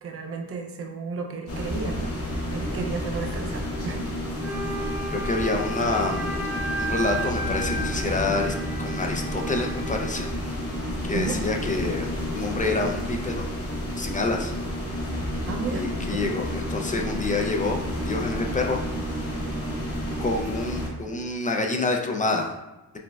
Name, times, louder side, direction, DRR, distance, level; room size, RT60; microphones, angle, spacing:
voice 1, 0.0-2.2 2.5-4.1 11.1-11.4 15.5-16.4, right 4 dB, 40° right, 2 dB, 0.5 m, -33 dB
sound 1, 1.5-20.9, equal, 40° left, 0.9 m, -30 dB
Wind instrument woodwind instrument, 4.4-10.3, right 1 dB, 5° right, 0.8 m, -34 dB
voice 2, 5.1-6.5 6.8-10.6 11.1-13.5 14.0-14.5 15.7-18.8 20.2-22.5, left 3 dB, 25° left, 2 dB, 0.3 m, -27 dB
4.9 x 2.1 x 2.3 m, 1.0 s
cardioid pair, 95°, 36 cm